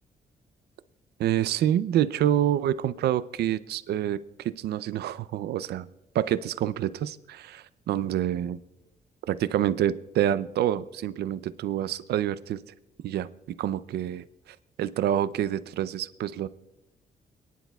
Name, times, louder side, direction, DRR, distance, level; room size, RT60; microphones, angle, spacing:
voice 1, 1.2-5.9 6.1-8.6 9.3-12.6 13.0-13.3 13.6-14.2 14.8-16.5, right 11 dB, 90° right, 15 dB, 0.5 m, -27 dB
27.0 x 10.5 x 2.3 m, 1.0 s
cardioid pair, 135°, 16 cm